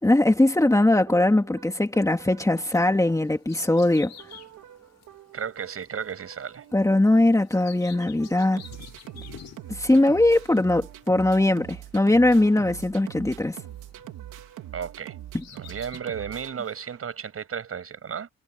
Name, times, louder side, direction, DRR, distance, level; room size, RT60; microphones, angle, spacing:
voice 1, 0.0-4.1 6.7-8.6 9.7-13.6, left 1 dB, 10° left, 2.3 m, -20 dB
sound 1, 0.6-17.2, right 12 dB, 85° right, 3.6 m, -44 dB
Bird vocalization bird call bird song, 2.6-14.6 15.1-16.0, left 9 dB, 65° left, 8.0 m, -50 dB
voice 2, 5.3-6.6 14.7-15.2 15.5-18.3, right 7 dB, 50° right, 6.6 m, -34 dB
cardioid pair, 90°, 30 cm